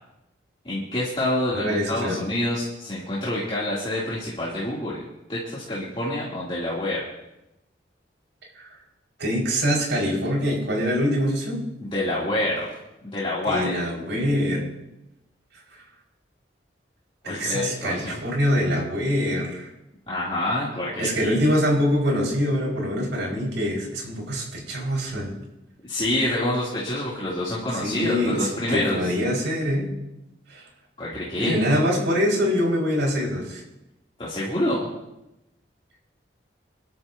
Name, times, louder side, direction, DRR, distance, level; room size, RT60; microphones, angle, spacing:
voice 1, 0.6-5.0 5.3-7.0 11.8-12.6 13.1-13.8 17.2-18.2 20.1-21.3 25.8-29.0 31.0-31.6 34.2-34.9, left 1 dB, 30° left, -7 dB, 3.0 m, -27 dB
voice 2, 1.5-2.2 8.5-8.7 9.2-11.6 13.5-14.6 17.2-19.7 21.0-25.3 27.7-29.9 30.5-30.6 31.4-33.6, equal, 85° right, -1 dB, 5.5 m, -24 dB
26.5 x 12.5 x 2.8 m, 0.89 s
head